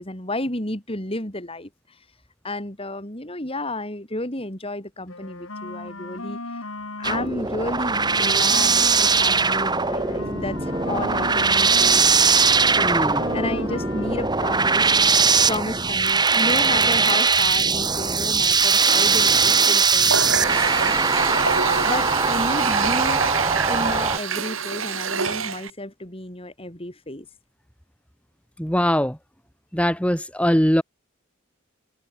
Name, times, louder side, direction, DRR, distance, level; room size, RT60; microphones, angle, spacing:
voice 1, 0.0-2.0 2.4-6.7 7.0-23.2 23.7-27.3, left 1 dB, 30° left, 5.9 m, -32 dB
sound 1, 5.1-7.4 7.7-12.0 12.3-14.3, left 2 dB, 85° left, 6.1 m, -35 dB
sound 2, 7.0-24.2, right 4 dB, 20° right, 3.3 m, -20 dB
voice 2, 12.8-13.3 28.6-29.2 29.7-30.8, equal, 5° left, 6.3 m, -21 dB
Water tap faucet, 19.9-25.7, right 6 dB, 80° right, 5.7 m, -26 dB
open air
head